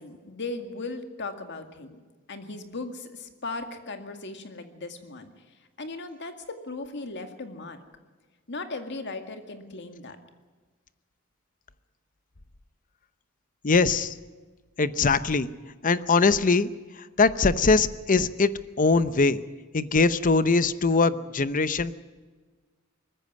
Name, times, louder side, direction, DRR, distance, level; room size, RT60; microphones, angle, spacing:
voice 1, 0.0-2.0 2.3-5.3 5.8-7.8 8.5-10.2, left 3 dB, 60° left, 7 dB, 2.1 m, -37 dB
voice 2, 13.6-14.1 14.8-15.5 15.8-16.7 17.2-18.5 18.8-19.4 19.7-21.9, left 4 dB, 40° left, 15 dB, 0.8 m, -21 dB
20.0 x 14.5 x 9.6 m, 1.4 s
head